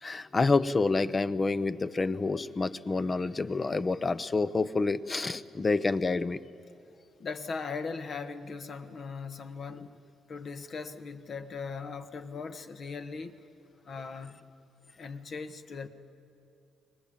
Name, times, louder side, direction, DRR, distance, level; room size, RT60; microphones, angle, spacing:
voice 1, 0.0-6.4, left 3 dB, 30° left, 14 dB, 0.8 m, -28 dB
voice 2, 7.2-9.9 10.3-13.4 13.8-14.3 15.0-15.9, left 5 dB, 50° left, 8 dB, 1.4 m, -39 dB
24.0 x 20.0 x 8.7 m, 2.6 s
cardioid pair, 90°, 0 cm